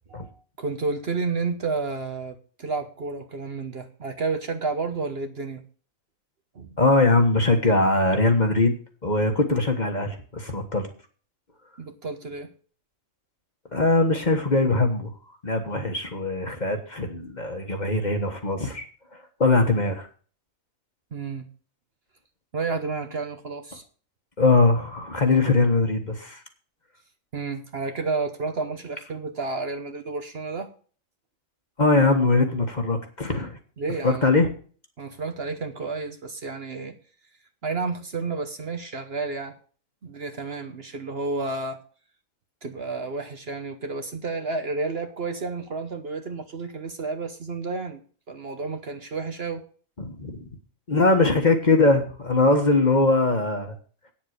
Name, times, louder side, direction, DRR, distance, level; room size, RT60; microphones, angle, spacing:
voice 1, 0.6-5.6 6.5-6.7 11.8-12.5 21.1-21.5 22.5-23.8 27.3-30.7 33.8-34.3 35.0-36.9 37.6-39.5 40.0-41.8 42.6-48.0 48.3-49.6, right 4 dB, 50° right, 7 dB, 1.1 m, -31 dB
voice 2, 6.8-8.7 9.0-10.9 13.7-15.1 15.4-18.8 19.4-20.1 24.4-26.4 31.8-33.6 34.0-34.5 50.0-50.4 50.9-53.7, left 3 dB, 35° left, 5 dB, 1.5 m, -21 dB
9.2 x 7.4 x 6.5 m, 0.42 s
omnidirectional pair, 1.5 m